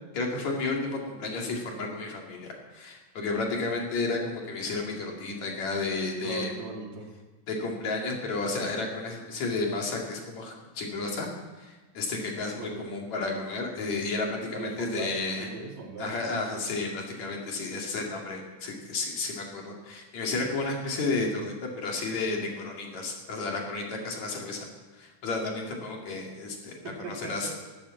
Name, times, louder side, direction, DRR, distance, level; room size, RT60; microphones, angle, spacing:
voice 1, 0.1-6.5 7.5-11.3 11.6-15.5 16.0-24.7 25.0-27.5, left 3 dB, 55° left, 0 dB, 3.5 m, -32 dB
voice 2, 6.2-7.1 12.6-12.9 14.5-16.5 26.8-27.6, right 4 dB, 70° right, 0 dB, 4.0 m, -39 dB
13.0 x 11.5 x 8.4 m, 1.2 s
omnidirectional pair, 4.0 m